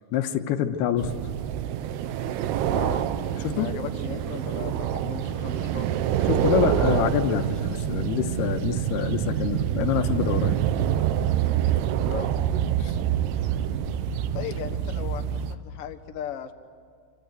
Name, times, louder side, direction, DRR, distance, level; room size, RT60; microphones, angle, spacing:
voice 1, 0.1-1.1 3.4-3.7 6.3-10.6 12.8-12.9, left 10 dB, 85° left, 7 dB, 3.1 m, -26 dB
sound 1, 1.0-15.6, right 10 dB, 85° right, 3.0 m, -26 dB
voice 2, 3.5-6.0 12.1-12.3 14.3-16.5, left 8 dB, 65° left, 5 dB, 1.5 m, -37 dB
27.5 x 25.5 x 8.1 m, 2.1 s
omnidirectional pair, 4.5 m